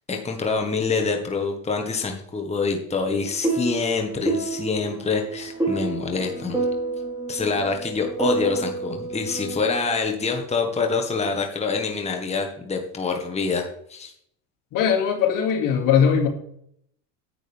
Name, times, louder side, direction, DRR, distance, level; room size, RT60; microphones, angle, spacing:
voice 1, 0.1-6.6 7.3-14.1, left 4 dB, 20° left, 3 dB, 1.5 m, -26 dB
sound 1, 3.1-10.0, right 3 dB, 10° right, 4.3 m, -29 dB
voice 2, 14.7-16.3, left 7 dB, 60° left, 2 dB, 2.5 m, -20 dB
10.0 x 8.9 x 3.5 m, 0.69 s
supercardioid pair, 105°, 36 cm